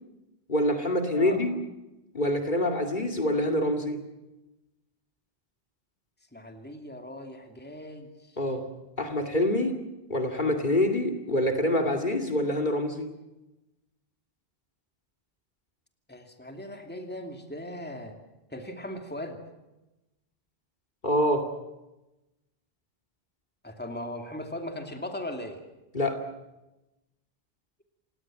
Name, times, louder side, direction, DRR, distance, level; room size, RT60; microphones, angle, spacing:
voice 1, 0.5-1.6 2.1-4.0 8.4-8.7 9.0-9.7 10.1-13.1 21.0-21.5 25.9-26.2, left 1 dB, 50° left, 4 dB, 2.6 m, -26 dB
voice 2, 6.3-8.1 16.1-18.2 18.5-19.4 23.6-25.6, left 1 dB, 10° left, 4 dB, 2.6 m, -38 dB
29.0 x 18.0 x 7.6 m, 0.98 s
omnidirectional pair, 1.1 m